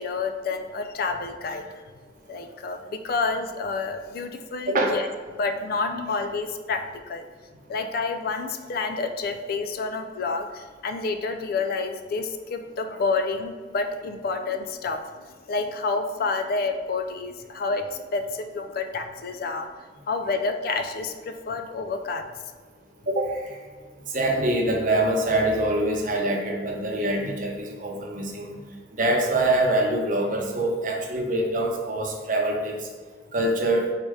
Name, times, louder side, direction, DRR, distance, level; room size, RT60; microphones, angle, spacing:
voice 1, 0.0-1.8 2.3-5.1 5.4-6.8 7.1-7.3 7.7-15.0 15.5-19.7 20.1-22.2, left 4 dB, 55° left, 6 dB, 0.3 m, -29 dB
voice 2, 24.1-28.5 29.0-32.8 33.3-33.9, right 1 dB, 45° right, 0 dB, 0.7 m, -24 dB
4.0 x 3.3 x 3.5 m, 1.5 s
head